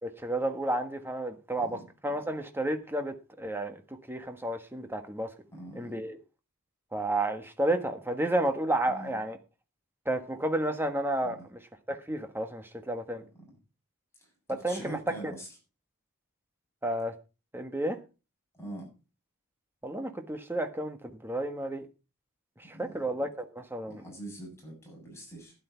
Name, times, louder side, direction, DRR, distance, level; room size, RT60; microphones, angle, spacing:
voice 1, 0.0-3.8 4.1-5.3 5.7-6.2 6.9-9.4 10.0-11.6 11.9-13.2 14.5-15.3 16.8-17.1 17.5-18.0 19.8-21.9 22.6-24.1, right 1 dB, 10° right, 1.4 m, -31 dB
voice 2, 5.5-6.0 8.9-9.2 11.2-11.3 14.7-15.5 18.6-18.9 22.7-23.0 23.9-25.5, right 1 dB, 10° left, 7.4 m, -43 dB
12.0 x 10.5 x 4.5 m
head